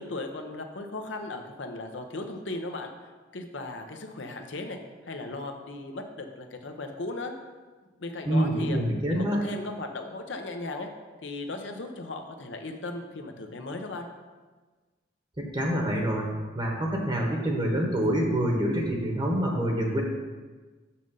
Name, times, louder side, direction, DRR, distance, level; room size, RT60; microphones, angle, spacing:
voice 1, 0.0-2.9 3.3-4.8 5.1-7.3 8.0-8.8 9.1-10.9 11.2-14.1, left 2 dB, 80° left, 4 dB, 0.8 m, -37 dB
voice 2, 8.2-9.4 15.4-20.0, right 1 dB, 25° right, 0 dB, 1.0 m, -26 dB
6.3 x 5.8 x 5.5 m, 1.3 s
head